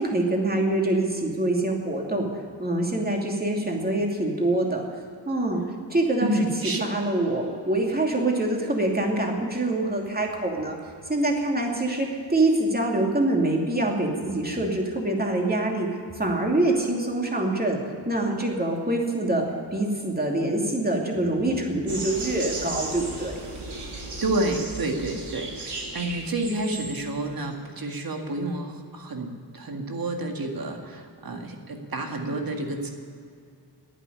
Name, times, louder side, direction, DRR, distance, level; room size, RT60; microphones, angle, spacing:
voice 1, 0.0-2.3 2.6-4.8 5.3-5.6 5.9-10.8 11.1-15.9 16.1-17.8 18.0-19.4 19.7-23.4, right 2 dB, 20° right, 0 dB, 2.7 m, -25 dB
voice 2, 6.2-6.8 24.2-32.9, right 1 dB, 55° right, 3 dB, 2.0 m, -29 dB
sound 1, 21.9-27.2, right 2 dB, 70° right, 3.0 m, -35 dB
11.0 x 9.4 x 9.9 m, 2.3 s
wide cardioid pair, 80°, 43 cm